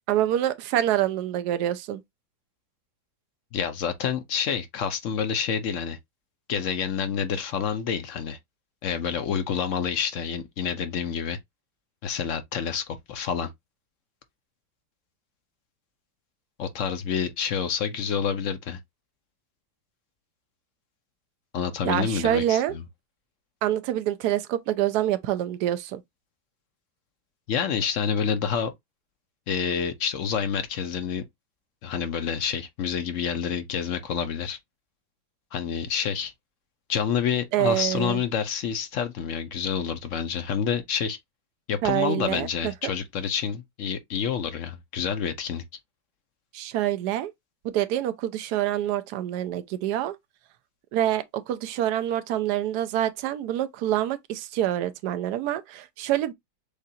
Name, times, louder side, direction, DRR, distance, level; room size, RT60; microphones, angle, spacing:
voice 1, 0.1-2.0 21.8-22.7 23.6-26.0 37.5-38.2 41.8-42.7 46.5-47.3 47.6-50.2 50.9-56.3, right 12 dB, 75° right, 1.1 m, -26 dB
voice 2, 3.5-6.0 6.5-8.4 8.8-11.4 12.0-13.5 16.6-18.8 21.5-22.8 27.5-28.7 29.5-31.2 31.8-34.6 35.5-36.3 36.9-41.2 41.7-45.6, left 7 dB, 60° left, 0.8 m, -28 dB
6.6 x 2.4 x 2.7 m
omnidirectional pair, 1.8 m